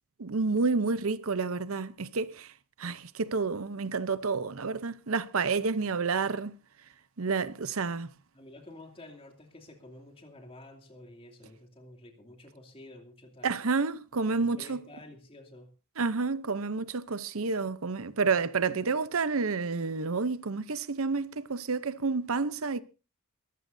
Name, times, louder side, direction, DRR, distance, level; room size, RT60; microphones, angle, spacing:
voice 1, 0.2-2.5 2.8-6.5 7.2-8.1 13.4-14.8 16.0-22.8, right 4 dB, 70° right, 0.8 m, -29 dB
voice 2, 8.3-13.5 14.3-15.7, left 1 dB, 25° left, 2.7 m, -50 dB
23.0 x 14.5 x 2.7 m
head